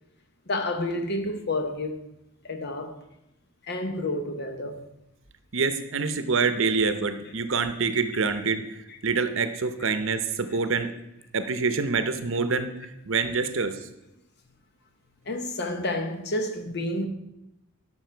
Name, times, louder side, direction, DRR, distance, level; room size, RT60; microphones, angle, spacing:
voice 1, 0.5-2.0 2.4-3.0 3.7-4.9 8.9-9.0 9.8-9.9 10.5-10.6 13.6-13.7 15.2-17.1, left 1 dB, 50° left, 1.0 m, -30 dB
voice 2, 5.5-8.6 9.0-10.9 11.3-12.7 13.1-13.8, right 4 dB, 60° right, 0.8 m, -26 dB
12.5 x 6.2 x 4.5 m
head